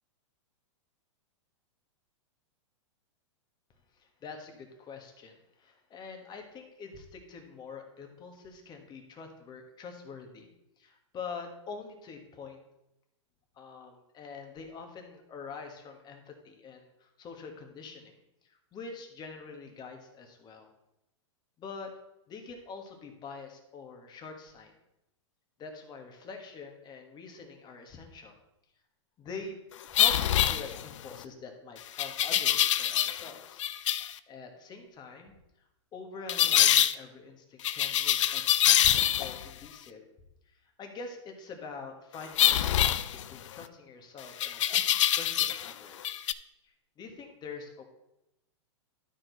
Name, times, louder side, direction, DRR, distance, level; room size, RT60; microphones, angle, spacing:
voice 1, 4.0-10.5 10.8-12.6 13.5-18.1 18.5-20.7 21.6-21.9 22.3-24.7 25.6-28.4 29.2-29.6 29.9-33.6 33.9-34.0 34.3-35.4 35.9-40.0 40.5-46.2 46.6-47.8, left 4 dB, 25° left, 4 dB, 1.5 m, -45 dB
sound 1, 29.9-31.1 32.0-33.3 33.6-34.1 36.3-36.9 37.6-39.5 42.4-43.6 44.4-45.7 46.0-46.3, left 11 dB, 75° left, 0.4 m, -25 dB
12.0 x 4.6 x 4.0 m, 0.88 s
hypercardioid pair, 125°, 16 cm